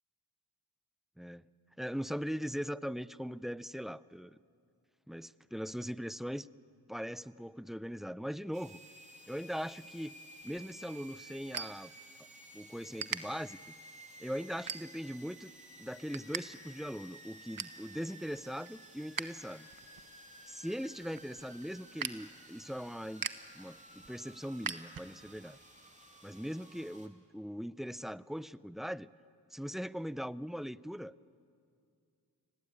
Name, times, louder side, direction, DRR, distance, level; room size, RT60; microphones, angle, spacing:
voice 1, 1.8-4.4 5.1-6.5 6.9-8.8 9.3-10.1 10.4-11.9 12.5-13.7 14.2-15.5 15.8-19.7 20.5-23.3 23.5-25.6 26.2-29.1 29.5-31.1, equal, ahead, 18 dB, 0.5 m, -40 dB
sound 1, 8.5-27.1, right 1 dB, 15° right, 3.1 m, -54 dB
sound 2, 10.4-12.5 12.8-13.2 13.8-14.0 14.5-15.2 15.6-16.4 16.7-16.8 17.2-17.8 18.3-19.3 19.6-25.4, right 6 dB, 50° right, 1.2 m, -42 dB
25.5 x 18.0 x 9.5 m, 2.3 s
cardioid pair, 45°, 42 cm